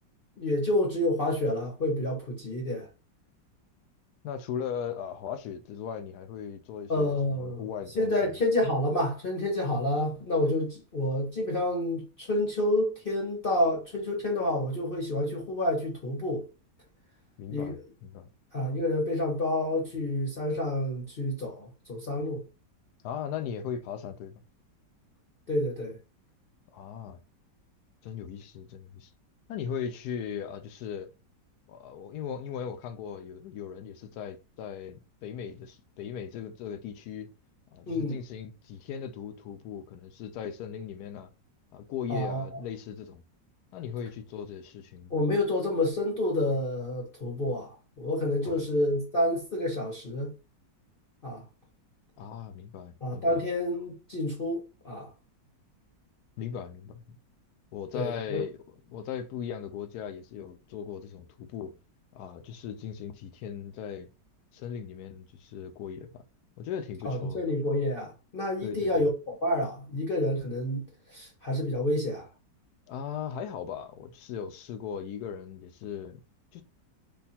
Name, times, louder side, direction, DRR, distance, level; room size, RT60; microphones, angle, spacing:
voice 1, 0.4-2.9 6.9-7.6 8.0-16.5 17.5-17.8 18.5-22.4 25.5-26.0 37.9-38.2 42.1-42.4 45.1-50.3 51.2-51.5 53.0-55.1 57.9-58.4 67.0-72.3, left 1 dB, 40° left, 0.9 m, -29 dB
voice 2, 4.2-8.4 17.4-18.3 23.0-24.4 26.7-27.2 28.0-29.1 29.5-31.1 31.7-37.3 37.7-41.3 41.7-43.2 43.7-45.1 48.4-48.5 52.2-53.4 56.4-57.2 57.7-58.6 58.9-61.7 62.1-64.1 64.5-66.2 66.6-67.4 68.6-69.1 72.9-76.2 76.5-76.6, left 8 dB, 70° left, 1.0 m, -38 dB
3.4 x 2.3 x 4.1 m
omnidirectional pair, 1.9 m